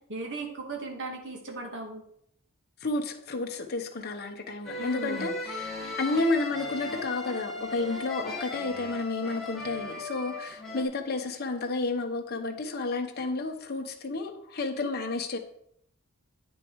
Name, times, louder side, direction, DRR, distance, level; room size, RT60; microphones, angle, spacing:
voice 1, 0.1-2.0 4.8-5.3, right 3 dB, 55° right, 1 dB, 2.2 m, -37 dB
voice 2, 2.8-15.4, left 3 dB, 45° left, 3 dB, 1.1 m, -31 dB
sound 1, 4.6-10.8, left 2 dB, ahead, 2.5 m, -37 dB
9.3 x 6.8 x 4.7 m, 0.72 s
head